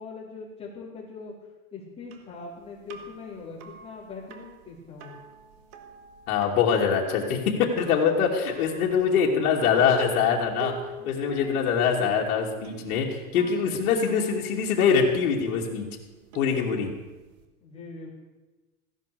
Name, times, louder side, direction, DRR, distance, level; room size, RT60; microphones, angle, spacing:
voice 1, 0.0-1.3 1.7-5.1 11.0-11.1 17.6-18.1, left 4 dB, 15° left, -5 dB, 4.0 m, -41 dB
sound 1, 2.1-17.5, right 4 dB, 45° right, 1.8 m, -44 dB
voice 2, 6.3-10.7 11.0-15.9 16.3-16.9, left 6 dB, 65° left, -2 dB, 2.9 m, -24 dB
15.5 x 10.5 x 7.0 m, 1.2 s
supercardioid pair, 160°, 43 cm